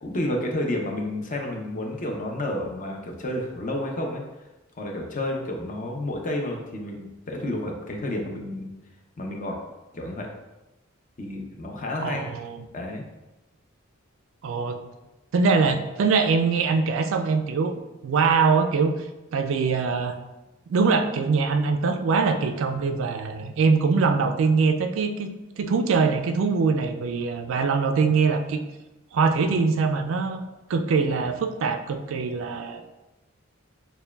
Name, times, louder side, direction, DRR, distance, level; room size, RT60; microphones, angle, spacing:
voice 1, 0.0-4.2 4.8-8.7 9.2-9.6 9.9-10.3 11.2-12.3 12.7-13.0, left 1 dB, 40° left, 1 dB, 0.6 m, -30 dB
voice 2, 12.0-12.7 14.4-14.8 15.3-18.9 19.3-20.1 20.7-28.6 29.1-30.4 30.7-32.8, right 4 dB, 65° right, 7 dB, 0.3 m, -23 dB
6.7 x 2.2 x 2.3 m, 1.0 s
head